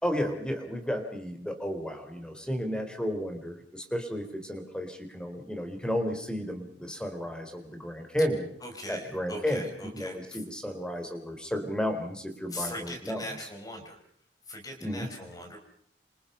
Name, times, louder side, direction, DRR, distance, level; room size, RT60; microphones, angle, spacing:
voice 1, 0.0-8.5 8.9-9.6 9.9-13.2 14.8-15.1, equal, 5° left, 6 dB, 4.0 m, -32 dB
voice 2, 8.6-10.4 12.5-14.0 14.5-15.6, left 1 dB, 20° left, 3 dB, 5.6 m, -40 dB
28.0 x 27.5 x 5.7 m, 0.63 s
head